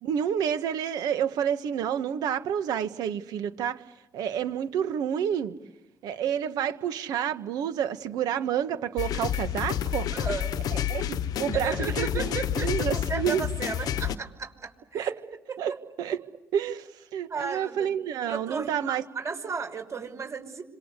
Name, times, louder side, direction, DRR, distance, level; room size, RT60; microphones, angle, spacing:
voice 1, 0.0-3.8 4.1-5.6 6.0-10.1 10.7-12.1 12.6-13.5 14.9-15.1 15.6-15.7 16.0-16.2 16.5-19.0, right 9 dB, 85° right, 9 dB, 1.7 m, -29 dB
sound 1, 9.0-14.1, left 10 dB, 75° left, 1.1 m, -29 dB
voice 2, 10.1-10.6 11.5-15.1 15.5-15.8 17.3-17.9 18.3-20.6, right 5 dB, 50° right, 5 dB, 5.9 m, -34 dB
27.0 x 26.5 x 8.3 m, 0.92 s
supercardioid pair, 70°, 7 cm